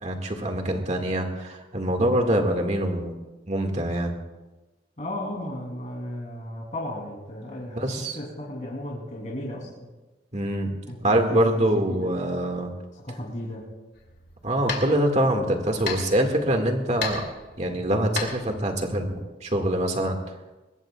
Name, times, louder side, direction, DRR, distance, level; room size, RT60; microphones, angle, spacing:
voice 1, 0.0-3.2 3.5-4.2 7.7-8.2 10.3-12.7 14.4-17.2 17.6-20.2, right 1 dB, 40° right, 3 dB, 2.0 m, -24 dB
voice 2, 5.0-9.9 10.9-12.1 13.0-13.7, left 1 dB, 40° left, -3 dB, 3.3 m, -35 dB
sound 1, 13.9-19.2, left 5 dB, 65° left, 2.7 m, -36 dB
22.5 x 20.5 x 2.4 m, 1.1 s
head